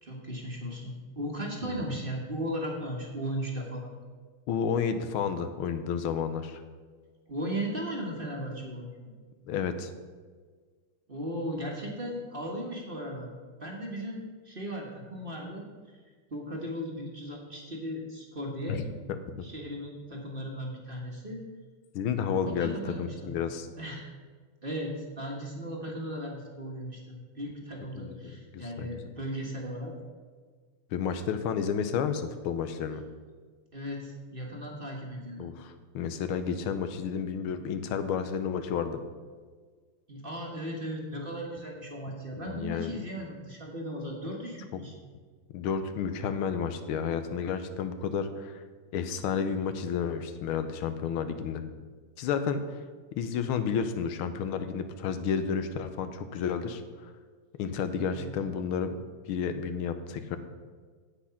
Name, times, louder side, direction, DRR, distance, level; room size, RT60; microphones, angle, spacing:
voice 1, 0.0-3.9 7.3-9.1 11.1-13.3 13.6-16.0 16.3-18.9 19.4-21.5 22.5-23.4 23.8-24.1 24.6-29.9 33.7-35.5 40.1-44.9 58.1-58.3, equal, 30° right, -1 dB, 1.4 m, -37 dB
voice 2, 4.5-6.6 9.4-9.9 18.7-18.8 19.1-19.5 21.9-23.7 28.0-29.0 30.9-33.0 35.4-39.0 42.4-43.0 44.7-44.8 45.5-48.6 48.9-51.6 52.2-52.8 53.1-57.1 57.6-59.0 59.3-60.4, left 7 dB, 90° left, 9 dB, 1.6 m, -31 dB
8.8 x 8.2 x 5.7 m, 1.5 s
omnidirectional pair, 2.3 m